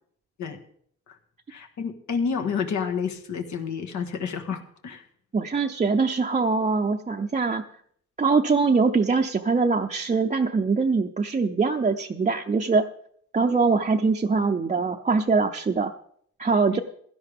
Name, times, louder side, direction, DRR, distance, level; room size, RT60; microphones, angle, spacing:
voice 1, 1.5-5.0 16.7-16.8, left 6 dB, 70° left, 5 dB, 1.7 m, -29 dB
voice 2, 5.3-7.6 8.2-12.9 13.3-15.9 16.4-16.8, right 4 dB, 25° right, 2 dB, 0.7 m, -23 dB
16.5 x 11.5 x 3.6 m, 0.65 s
cardioid pair, 90°, 30 cm